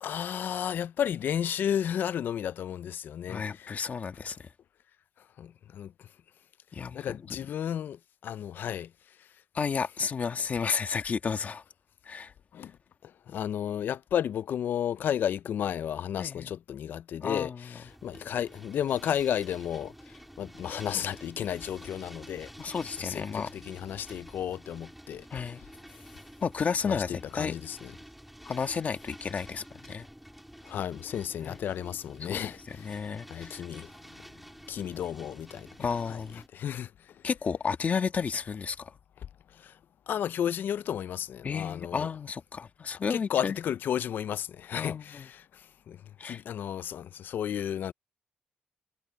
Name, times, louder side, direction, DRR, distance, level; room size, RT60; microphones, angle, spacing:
voice 1, 0.0-3.9 5.4-6.1 6.9-8.9 12.5-12.7 13.0-19.9 20.4-22.5 23.0-25.3 26.8-27.9 30.6-34.2 34.7-35.7 36.1-36.9 39.5-39.8 40.1-42.1 43.1-47.9, left 9 dB, 80° left, 0.4 m, -33 dB
voice 2, 3.3-4.5 6.7-7.4 9.5-11.6 12.0-12.3 16.2-16.5 17.2-17.7 22.6-23.5 25.3-25.6 26.4-27.5 28.4-30.1 31.4-31.6 32.3-32.4 32.7-33.6 35.8-36.4 37.2-38.9 41.4-43.6 44.7-45.3 46.2-46.4, left 6 dB, 50° left, 1.6 m, -32 dB
sound 1, 17.8-36.5, equal, 5° right, 2.5 m, -50 dB
cardioid pair, 90°, 3 cm